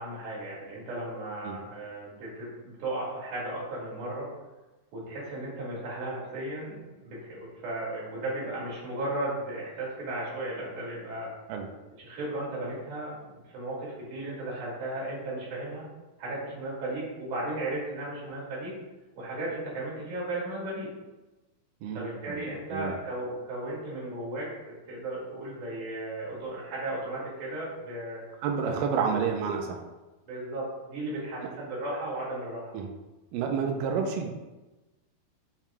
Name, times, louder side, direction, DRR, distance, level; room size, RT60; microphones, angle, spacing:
voice 1, 0.0-4.3 4.9-11.4 12.0-13.2 13.5-15.9 16.2-18.8 19.2-20.9 21.9-28.2 28.6-28.8 30.3-32.7, right 1 dB, 55° right, -5 dB, 3.4 m, -35 dB
voice 2, 21.8-22.4 22.7-22.9 28.4-29.8 32.7-32.9 33.3-34.3, right 6 dB, 90° right, 2 dB, 2.0 m, -29 dB
8.6 x 5.9 x 2.3 m, 1.1 s
omnidirectional pair, 4.6 m